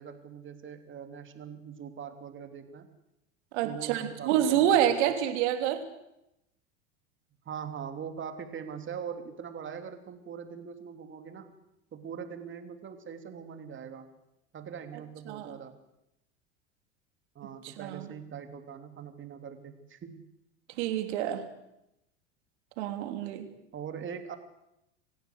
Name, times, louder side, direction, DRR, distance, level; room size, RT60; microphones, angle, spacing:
voice 1, 0.0-2.9 3.6-5.1 7.4-11.5 11.9-14.1 14.5-15.7 17.3-20.2 23.7-24.4, right 7 dB, 30° right, 7 dB, 3.2 m, -42 dB
voice 2, 3.5-5.8 15.3-15.6 17.6-18.1 20.8-21.5 22.8-23.5, right 10 dB, 65° right, 7 dB, 3.3 m, -27 dB
26.5 x 16.0 x 8.1 m, 0.86 s
hypercardioid pair, 80°, 37 cm